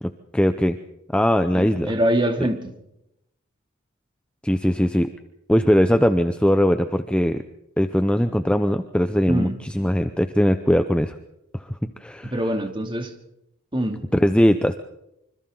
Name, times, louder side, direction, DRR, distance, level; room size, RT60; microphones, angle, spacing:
voice 1, 0.0-0.8 1.1-1.9 4.4-5.1 5.5-7.4 7.8-9.5 9.7-11.1 11.5-12.3 14.1-14.8, equal, 5° left, 8 dB, 0.7 m, -20 dB
voice 2, 1.5-2.7 9.3-9.6 12.2-13.1 13.7-14.1, right 1 dB, 25° right, 4 dB, 2.6 m, -24 dB
26.5 x 25.5 x 3.9 m, 0.84 s
head